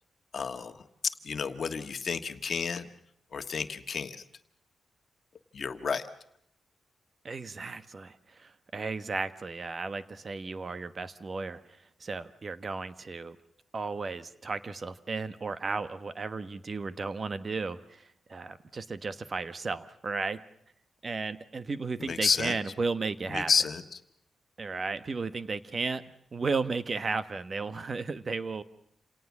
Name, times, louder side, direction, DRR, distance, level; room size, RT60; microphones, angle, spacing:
voice 1, 0.3-0.8 1.2-2.9 3.3-4.2 5.5-6.0 22.0-22.6 23.3-24.0, left 5 dB, 55° left, 9 dB, 1.5 m, -30 dB
voice 2, 7.2-11.6 12.0-13.4 13.7-18.0 18.3-20.4 21.0-23.5 24.6-26.0 26.3-28.6, right 4 dB, 40° right, 13 dB, 1.2 m, -34 dB
28.0 x 18.0 x 7.3 m, 0.73 s
cardioid pair, 90°, 0 cm